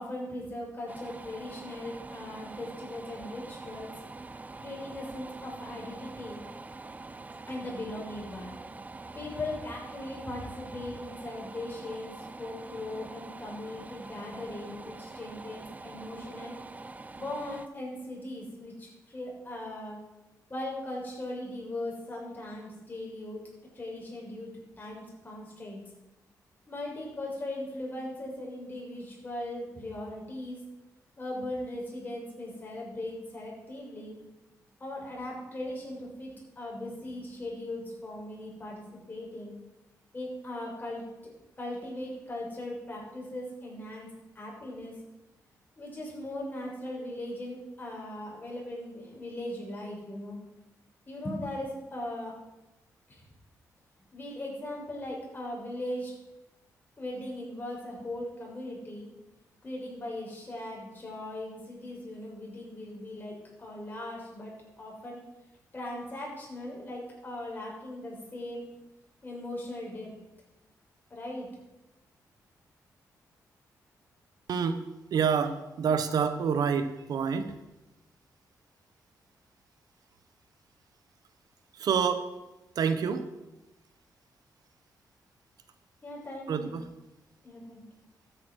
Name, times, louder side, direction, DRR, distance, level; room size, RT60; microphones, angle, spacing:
voice 1, 0.0-3.9 4.6-6.4 7.5-8.6 9.1-16.6 17.1-20.0 20.5-23.4 23.7-24.5 24.8-25.8 26.7-30.6 31.2-34.2 34.8-36.3 36.6-39.5 40.1-41.0 41.6-44.1 44.3-44.9 45.8-50.4 51.1-52.3 53.1-53.2 54.1-56.1 57.0-59.1 59.6-63.3 63.6-65.2 65.7-68.7 69.2-70.1 71.1-71.5 86.0-86.7 87.4-87.8, left 1 dB, 25° left, -3 dB, 6.3 m, -39 dB
sound 1, 0.9-17.7, right 3 dB, 25° right, 0.6 m, -45 dB
voice 2, 74.5-74.8 75.1-77.6 81.7-82.4 82.7-83.3 86.5-86.8, right 6 dB, 75° right, 11 dB, 1.2 m, -27 dB
13.0 x 9.3 x 6.4 m, 0.98 s
cardioid pair, 95°, 7 cm